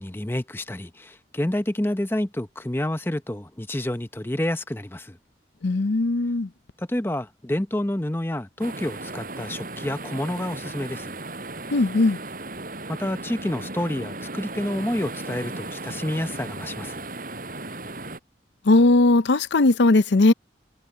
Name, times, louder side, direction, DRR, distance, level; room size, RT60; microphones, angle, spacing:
voice 1, 0.0-5.2 6.9-11.1 12.9-17.0, left 1 dB, 10° left, 0.7 m, -29 dB
voice 2, 5.6-6.5 11.7-12.2 18.7-20.3, left 2 dB, 75° left, 0.6 m, -18 dB
sound 1, 8.6-18.2, right 2 dB, 50° right, 6.0 m, -36 dB
head